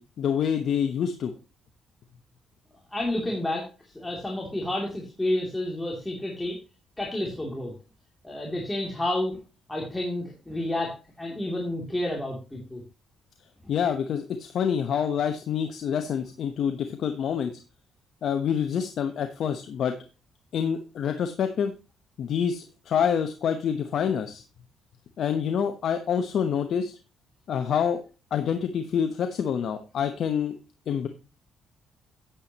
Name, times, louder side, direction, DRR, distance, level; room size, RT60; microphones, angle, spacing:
voice 1, 0.0-1.3 13.7-17.6 18.2-20.0 20.5-21.7 22.2-24.4 25.2-27.0 27.5-28.0 28.3-30.6 30.9-31.1, left 8 dB, 65° left, 7 dB, 0.9 m, -27 dB
voice 2, 2.9-6.6 7.0-7.7 8.2-9.4 9.7-12.8, left 1 dB, 10° left, -2 dB, 2.8 m, -30 dB
10.0 x 8.4 x 2.9 m, 0.32 s
cardioid pair, 90°, 0 cm